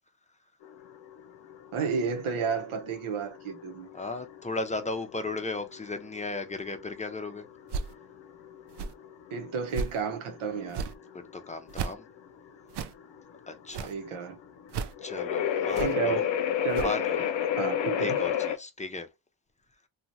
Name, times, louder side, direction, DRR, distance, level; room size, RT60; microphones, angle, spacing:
sound 1, 0.6-18.6, left 9 dB, 65° left, 0.6 m, -32 dB
voice 1, 1.7-3.9 9.3-10.9 13.8-14.4 15.8-16.2 16.6-16.9 17.6-18.2, right 6 dB, 90° right, 0.9 m, -31 dB
voice 2, 3.9-7.4 11.3-12.1 13.5-13.9 15.0-16.3 16.8-17.3 18.0-19.1, left 3 dB, 15° left, 0.6 m, -35 dB
sound 2, 7.7-7.9 8.7-8.9 9.7-10.0 10.7-10.9 11.7-11.9 12.7-12.9 13.7-13.9 14.7-14.9 15.7-15.9 16.7-16.9, right 5 dB, 60° right, 0.5 m, -34 dB
2.9 x 2.4 x 2.5 m
cardioid pair, 90°, 48 cm